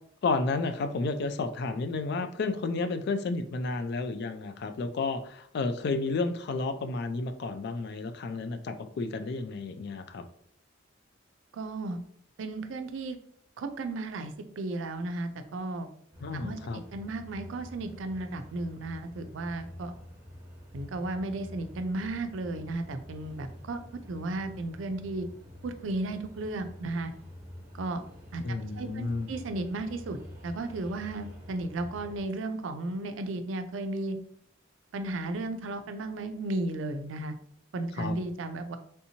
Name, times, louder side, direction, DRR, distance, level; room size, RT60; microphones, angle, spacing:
voice 1, 0.2-10.2 16.2-16.8 28.4-29.3 38.0-38.2, left 3 dB, 55° left, 9 dB, 0.3 m, -31 dB
voice 2, 11.5-12.0 12.4-13.2 13.6-15.9 16.3-16.6 16.9-19.9 20.7-25.3 25.6-27.1 27.7-28.0 28.3-28.4 28.8-30.2 30.4-34.2 34.9-37.3 37.7-38.8, right 2 dB, 70° right, 8 dB, 0.4 m, -34 dB
sound 1, 16.1-32.2, equal, 15° right, 1.0 m, -47 dB
3.4 x 2.8 x 2.7 m, 0.65 s
head